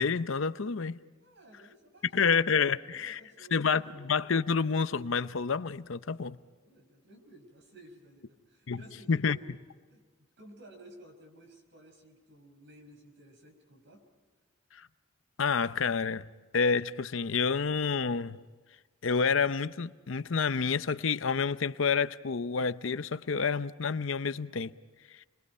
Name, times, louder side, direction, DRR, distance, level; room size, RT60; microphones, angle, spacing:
voice 1, 0.0-1.0 2.1-3.2 3.5-6.4 8.7-8.8 9.1-9.4 14.7-14.9 15.4-16.2 16.5-18.4 19.0-24.7, left 5 dB, 70° left, 0.7 m, -28 dB
voice 2, 1.2-4.0 6.6-9.6 9.9-14.0, right 1 dB, 60° right, 5.6 m, -54 dB
30.0 x 22.0 x 5.5 m
head